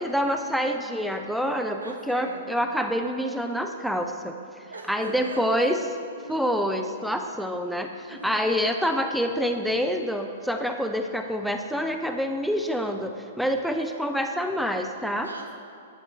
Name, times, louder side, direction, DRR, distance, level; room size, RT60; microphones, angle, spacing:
voice 1, 0.0-4.4 4.9-5.8 6.3-15.3, equal, ahead, 4 dB, 0.3 m, -27 dB
voice 2, 1.8-2.7 4.7-6.6 7.2-7.4 8.1-8.4 15.2-15.5, right 2 dB, 90° right, 2 dB, 0.8 m, -41 dB
10.5 x 4.4 x 2.4 m, 2.4 s
hypercardioid pair, 115°, 0 cm